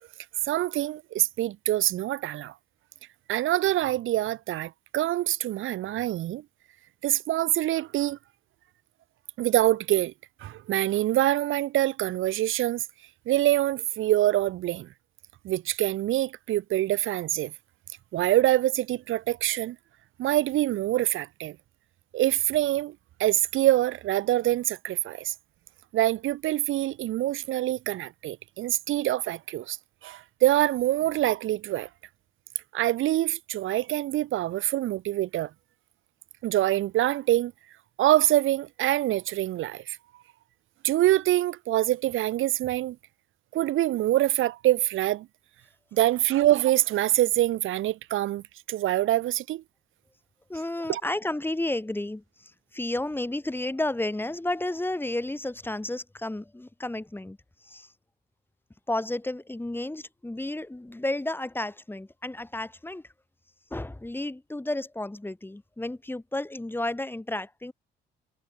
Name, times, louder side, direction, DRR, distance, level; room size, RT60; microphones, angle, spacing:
voice 1, 0.5-2.5 3.3-6.4 7.0-8.2 9.4-10.1 10.4-12.8 13.3-14.9 15.4-17.5 18.1-19.8 20.2-21.6 22.1-25.3 25.9-29.8 30.0-31.9 32.7-35.5 36.4-37.5 38.0-40.0 40.8-43.0 43.5-45.3 45.9-49.6 50.9-51.0, right 14 dB, 85° right, 4.3 m, -25 dB
voice 2, 50.5-57.4 57.6-57.9 58.9-63.0 63.7-67.7, left 1 dB, 10° left, 5.1 m, -32 dB
cardioid pair, 90°, 20 cm